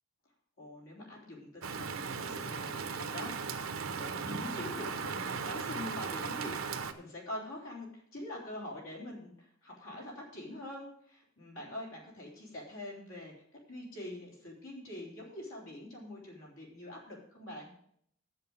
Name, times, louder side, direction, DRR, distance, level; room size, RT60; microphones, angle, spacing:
voice 1, 0.6-13.3 13.7-17.7, left 1 dB, 80° left, -3 dB, 3.6 m, -44 dB
Rain, 1.6-6.9, right 5 dB, 85° right, 0.8 m, -37 dB
7.9 x 7.2 x 7.2 m, 0.69 s
head